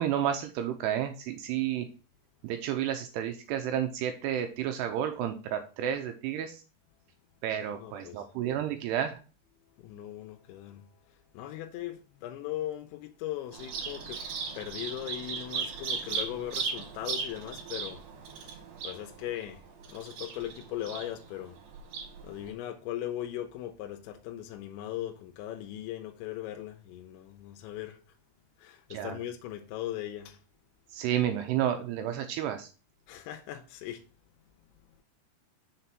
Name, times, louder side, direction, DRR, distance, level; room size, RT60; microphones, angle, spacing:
voice 1, 0.0-1.9 2.4-6.6 7.4-9.2 28.9-29.2 30.9-32.7, right 10 dB, 85° right, 2.5 m, -31 dB
voice 2, 7.7-8.3 9.7-14.2 14.5-21.6 22.2-28.2 28.6-30.4 33.1-34.1 34.8-35.0, left 12 dB, 90° left, 2.9 m, -39 dB
Bird vocalization bird call bird song, 13.5-22.5, right 5 dB, 60° right, 2.7 m, -38 dB
6.7 x 4.1 x 5.9 m
omnidirectional pair, 5.2 m